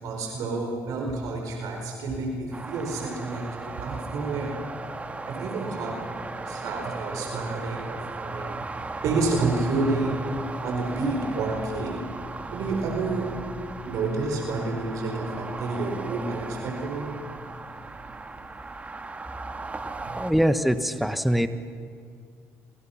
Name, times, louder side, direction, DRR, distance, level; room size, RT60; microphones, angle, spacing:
voice 1, 0.0-4.7 5.3-8.5 9.0-12.0 12.5-13.4 13.8-17.1 20.1-20.2, right 3 dB, 70° right, 1 dB, 4.5 m, -29 dB
sound 1, 2.5-20.3, right 3 dB, 25° right, 1.7 m, -37 dB
voice 2, 20.2-21.5, equal, ahead, 10 dB, 1.3 m, -23 dB
27.5 x 26.5 x 5.8 m, 2.2 s
supercardioid pair, 90°, 6 cm